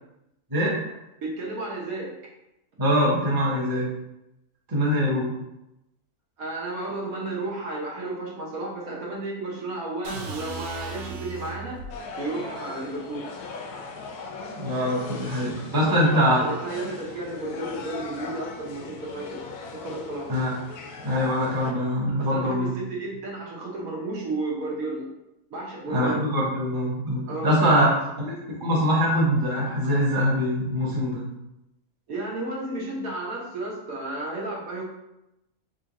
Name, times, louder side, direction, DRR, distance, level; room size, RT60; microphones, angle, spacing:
voice 1, 0.9-2.1 3.2-3.3 6.4-11.8 12.2-13.2 15.8-19.3 19.8-20.3 22.2-25.0 25.5-26.2 27.3-28.0 32.1-34.8, right 2 dB, 70° right, -2 dB, 1.3 m, -33 dB
voice 2, 2.8-3.9 4.7-5.3 14.6-16.4 20.3-20.5 21.0-22.7 25.9-27.9 28.2-28.3 28.6-31.2, equal, 20° right, -5 dB, 0.8 m, -23 dB
sound 1, 10.0-12.0, right 4 dB, 90° right, 1.2 m, -36 dB
sound 2, 11.9-21.7, left 4 dB, 85° left, 1.1 m, -39 dB
3.7 x 2.5 x 4.0 m, 0.89 s
omnidirectional pair, 1.6 m